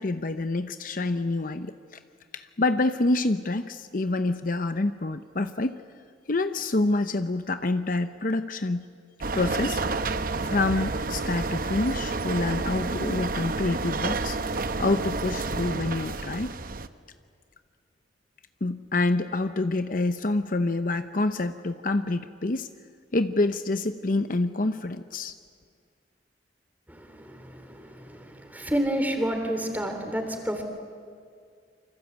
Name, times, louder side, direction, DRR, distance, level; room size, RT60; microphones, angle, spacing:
voice 1, 0.0-2.0 2.3-5.8 6.3-8.9 9.3-9.8 10.4-14.4 14.8-16.6 18.6-22.7 23.1-25.3, left 2 dB, 45° left, 10 dB, 0.7 m, -27 dB
sound 1, 9.2-16.9, right 3 dB, 50° right, 0.9 m, -30 dB
voice 2, 26.9-30.6, equal, 10° right, 4 dB, 3.4 m, -30 dB
28.0 x 25.5 x 8.1 m, 2.2 s
head